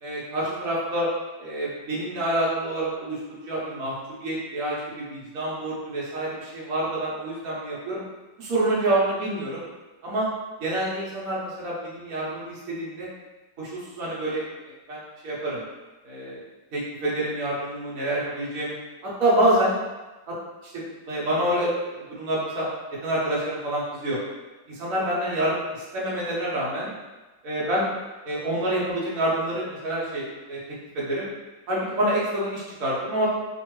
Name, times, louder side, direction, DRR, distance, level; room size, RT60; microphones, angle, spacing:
voice 1, 0.0-1.1 1.4-3.2 3.4-3.9 4.2-8.0 8.4-9.6 10.0-10.3 10.6-13.1 13.6-14.4 14.9-15.6 16.0-16.4 16.7-18.7 19.0-19.7 20.3-20.4 20.6-22.7 23.0-24.2 24.7-26.9 27.4-27.9 28.2-30.6 30.9-31.3 31.7-33.3, right 1 dB, 50° right, -6 dB, 1.2 m, -27 dB
3.0 x 2.7 x 3.1 m, 1.1 s
omnidirectional pair, 2.1 m